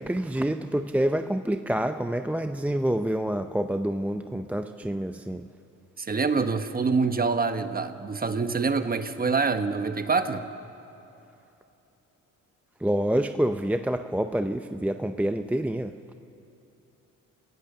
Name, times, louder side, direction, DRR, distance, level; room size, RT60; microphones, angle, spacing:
voice 1, 0.0-5.4 12.8-15.9, right 1 dB, 5° right, 7 dB, 0.6 m, -27 dB
voice 2, 6.0-10.4, right 4 dB, 30° right, 8 dB, 1.2 m, -26 dB
29.5 x 16.5 x 6.8 m, 2.9 s
cardioid pair, 100°, 31 cm